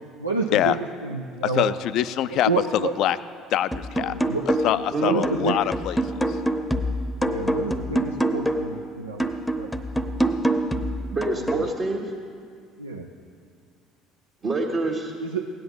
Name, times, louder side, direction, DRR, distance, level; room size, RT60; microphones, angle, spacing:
voice 1, 0.2-1.7 2.3-2.9 4.1-4.4 5.0-5.6 7.2-9.3 9.6-9.7 11.6-11.7 12.8-13.1 15.2-15.5, right 4 dB, 90° right, 0 dB, 0.5 m, -29 dB
voice 2, 1.4-3.2 3.5-4.2 4.6-6.0, left 12 dB, 55° left, 15 dB, 0.3 m, -24 dB
sound 1, 3.7-4.9 5.2-8.8 9.2-11.7, right 1 dB, 10° left, 0.8 m, -26 dB
voice 3, 4.9-5.2 11.0-12.0 14.4-15.1, right 3 dB, 40° right, -5 dB, 1.3 m, -26 dB
17.0 x 10.5 x 3.9 m, 2.2 s
figure-of-eight pair, 60°, 0 cm